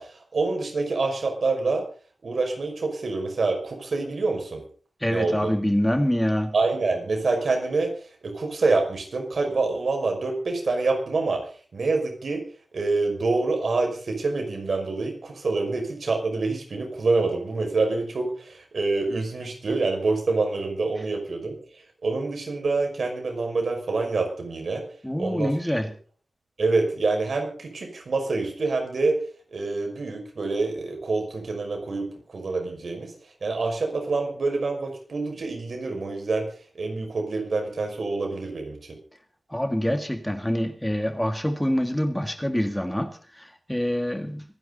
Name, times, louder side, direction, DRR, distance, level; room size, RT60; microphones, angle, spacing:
voice 1, 0.0-1.8 2.2-4.6 5.1-5.5 6.5-7.9 8.2-12.4 12.7-21.6 22.0-24.9 25.2-25.8 26.6-29.2 29.5-33.1 33.4-36.5 36.7-39.0, right 3 dB, 75° right, 5.7 m, -26 dB
voice 2, 5.0-6.5 25.0-25.9 39.5-44.4, equal, 5° left, 1.8 m, -26 dB
25.5 x 11.0 x 4.1 m
wide cardioid pair, 90°, 0 cm